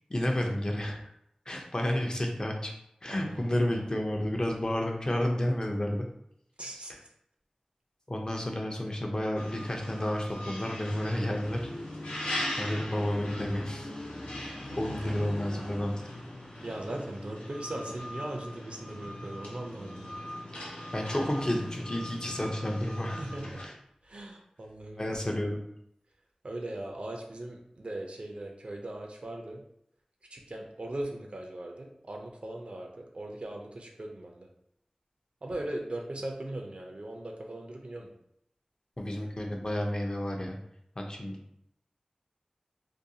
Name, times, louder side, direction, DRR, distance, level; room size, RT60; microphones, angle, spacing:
voice 1, 0.1-1.0 1.5-2.7 3.0-6.1 6.9-7.0 8.1-11.7 12.2-14.1 14.3-15.9 20.9-23.2 23.6-23.7 25.0-25.6 39.0-40.6 41.0-41.4, left 1 dB, 35° left, 1 dB, 0.5 m, -31 dB
voice 2, 3.1-3.8 6.6-6.9 14.9-15.0 16.6-20.2 23.2-23.6 24.0-25.2 26.4-29.6 30.3-34.5 35.4-38.1, right 1 dB, 60° right, 1 dB, 0.4 m, -39 dB
sound 1, 9.4-23.6, left 1 dB, 80° left, 0.7 m, -40 dB
2.5 x 2.3 x 2.7 m, 0.74 s
wide cardioid pair, 60°, 2 cm